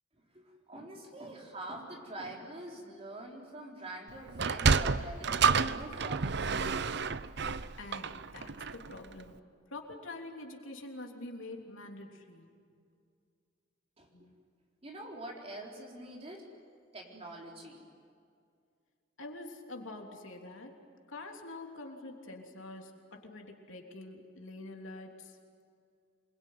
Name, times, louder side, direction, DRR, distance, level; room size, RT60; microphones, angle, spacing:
voice 1, 0.3-6.9 14.0-14.3 14.8-16.5 16.9-17.8, right 1 dB, 30° right, -1 dB, 4.2 m, -45 dB
Sliding door, 4.3-8.9, right 5 dB, 55° right, 0.7 m, -29 dB
voice 2, 7.8-9.4 9.7-12.5 14.1-14.3 19.2-20.7 21.1-25.4, left 2 dB, 75° left, 2 dB, 3.2 m, -46 dB
27.5 x 22.0 x 9.5 m, 2.3 s
head